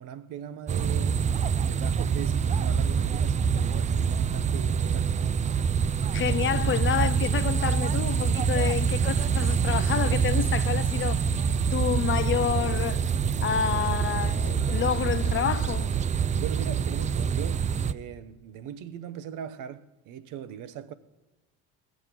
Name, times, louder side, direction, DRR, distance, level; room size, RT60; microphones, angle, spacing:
voice 1, 0.0-5.4 16.4-20.9, right 9 dB, 60° right, 0.8 m, -40 dB
sound 1, 0.7-17.9, right 6 dB, 20° right, 0.4 m, -26 dB
sound 2, 4.4-15.7, right 1 dB, 80° right, 2.8 m, -44 dB
voice 2, 6.1-11.2 11.7-13.1 13.4-15.9, left 9 dB, 35° left, 0.5 m, -29 dB
16.5 x 7.3 x 6.0 m
supercardioid pair, 80°, 35 cm